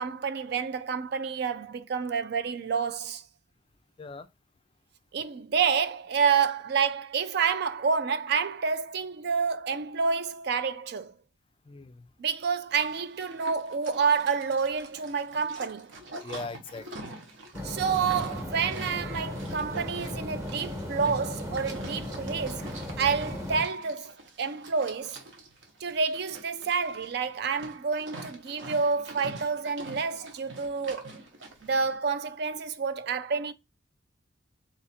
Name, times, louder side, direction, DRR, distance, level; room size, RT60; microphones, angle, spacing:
voice 1, 0.0-3.2 5.1-11.1 12.2-15.9 17.6-25.2 25.8-31.1 31.6-33.5, right 5 dB, 55° right, 0.4 m, -29 dB
voice 2, 11.7-12.1 16.2-17.1, left 3 dB, 30° left, 0.3 m, -40 dB
Livestock farm animals working animals, 12.7-32.0, right 2 dB, 70° right, 1.1 m, -46 dB
sound 1, 17.5-23.7, left 1 dB, 15° right, 0.9 m, -36 dB
4.0 x 2.5 x 4.2 m
head